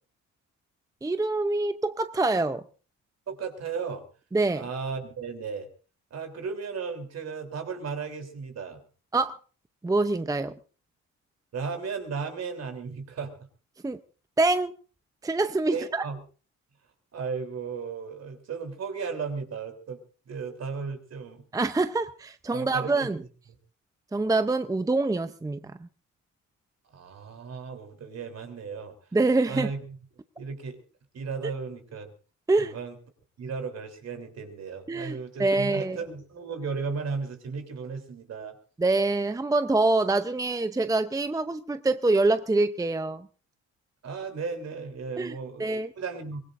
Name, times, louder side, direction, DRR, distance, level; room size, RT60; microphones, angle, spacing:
voice 1, 1.0-2.6 4.3-4.6 9.1-9.3 9.8-10.5 13.8-14.0 14.4-14.7 15.2-16.1 21.5-23.2 24.1-25.6 29.1-29.7 32.5-32.8 34.9-36.0 38.8-43.3 45.2-45.9, right 2 dB, 10° right, 0.6 m, -25 dB
voice 2, 3.3-4.0 4.5-5.7 6.1-8.8 11.5-13.5 15.7-16.2 17.1-20.0 20.3-21.4 22.5-23.1 26.9-28.9 29.5-29.8 30.4-30.8 31.1-32.1 32.6-32.9 33.4-38.5 44.0-45.7 46.0-46.4, right 5 dB, 55° right, 3.5 m, -35 dB
23.5 x 19.5 x 2.6 m
cardioid pair, 90°, 30 cm